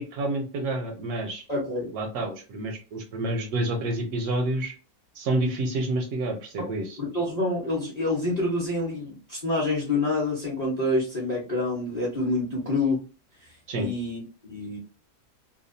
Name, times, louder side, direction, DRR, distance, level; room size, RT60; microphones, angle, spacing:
voice 1, 0.0-1.4 1.9-4.7 5.2-7.0 13.7-13.9, right 2 dB, 75° right, 4 dB, 1.0 m, -28 dB
voice 2, 1.5-1.9 6.6-6.7 7.0-13.0 13.7-14.8, left 2 dB, 35° left, -4 dB, 0.7 m, -27 dB
2.8 x 2.2 x 2.5 m, 0.35 s
omnidirectional pair, 1.8 m